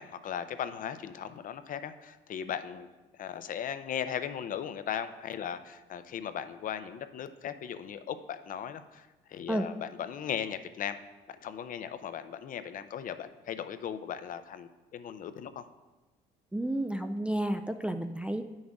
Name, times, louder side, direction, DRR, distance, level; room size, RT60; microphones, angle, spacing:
voice 1, 0.0-2.9 3.2-11.0 11.3-15.7, left 8 dB, 45° left, 11 dB, 0.5 m, -37 dB
voice 2, 16.5-18.4, right 1 dB, 5° right, 7 dB, 0.3 m, -31 dB
9.8 x 6.3 x 3.6 m, 1.2 s
cardioid pair, 120°, 19 cm